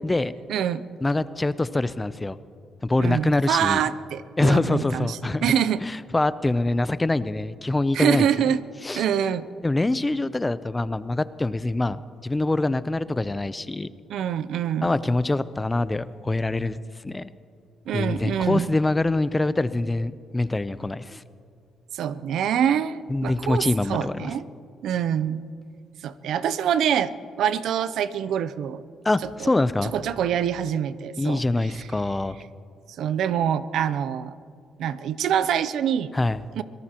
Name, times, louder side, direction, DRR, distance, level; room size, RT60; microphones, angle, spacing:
voice 1, 0.5-0.8 3.0-5.8 7.9-8.6 9.0-9.5 14.1-14.9 17.9-18.7 21.9-24.4 24.8-25.5 26.0-27.1 27.4-28.8 29.4-29.5 29.8-31.4 31.7-31.9 33.0-34.3 34.8-36.1 36.6-36.7, right 9 dB, 75° right, 14 dB, 0.5 m, -25 dB
voice 2, 1.0-2.4 2.8-3.8 4.4-5.5 5.8-8.5 8.8-9.0 9.6-13.9 14.8-16.8 17.0-17.3 17.9-21.2 23.1-24.3 29.0-29.9 31.2-32.4 36.1-36.4, left 2 dB, 15° left, 15 dB, 0.5 m, -24 dB
25.0 x 18.0 x 2.9 m, 2.3 s
cardioid pair, 90°, 0 cm